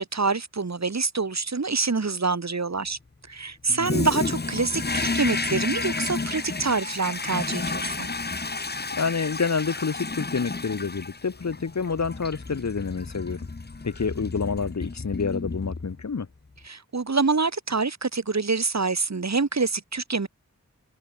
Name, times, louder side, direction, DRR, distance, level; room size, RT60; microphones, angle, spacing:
voice 1, 0.0-3.0 3.3-8.1 16.7-20.3, right 4 dB, 60° right, 1.8 m, -26 dB
voice 2, 3.7-4.1 8.9-13.5 13.8-16.3, left 5 dB, 60° left, 1.1 m, -28 dB
Toilet flush, 3.8-16.1, left 3 dB, 35° left, 1.0 m, -31 dB
wide cardioid pair, 50°, 31 cm